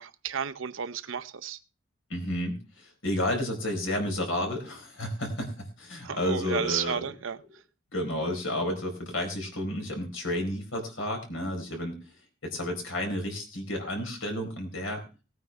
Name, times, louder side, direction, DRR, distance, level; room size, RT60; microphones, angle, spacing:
voice 1, 0.0-1.6 6.0-7.4, right 7 dB, 75° right, 0.7 m, -32 dB
voice 2, 2.1-7.0 7.9-12.0 12.4-15.0, left 1 dB, 75° left, 4.2 m, -31 dB
18.5 x 9.3 x 3.4 m
head